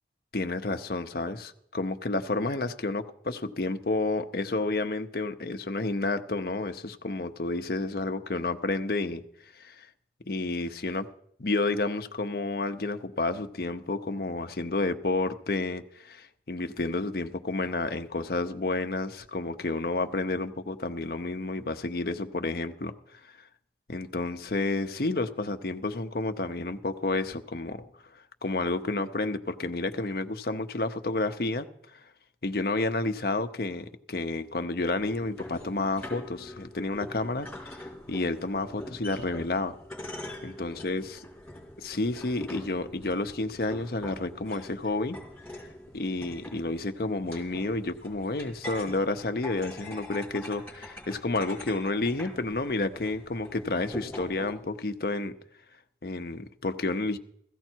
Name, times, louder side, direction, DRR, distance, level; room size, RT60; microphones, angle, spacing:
voice 1, 0.3-9.2 9.6-9.9 10.3-11.1 11.4-23.2 23.9-27.8 28.4-31.7 31.9-32.0 32.4-39.7 40.4-41.0 41.8-45.2 45.9-55.3 56.0-57.2, left 2 dB, 55° left, 0.8 m, -30 dB
sound 1, 34.9-54.5, left 1 dB, 5° left, 3.9 m, -44 dB
16.0 x 15.0 x 4.5 m
head